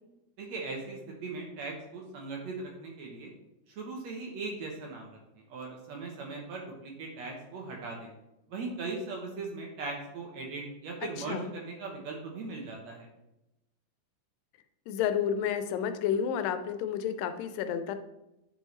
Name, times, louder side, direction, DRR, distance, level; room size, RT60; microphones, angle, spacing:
voice 1, 0.4-3.3 3.7-5.2 5.5-8.1 8.5-13.1, right 3 dB, 65° right, 0 dB, 2.0 m, -39 dB
voice 2, 11.2-11.5 14.9-18.0, left 8 dB, 85° left, 9 dB, 2.3 m, -30 dB
9.1 x 5.5 x 3.2 m, 0.90 s
omnidirectional pair, 3.9 m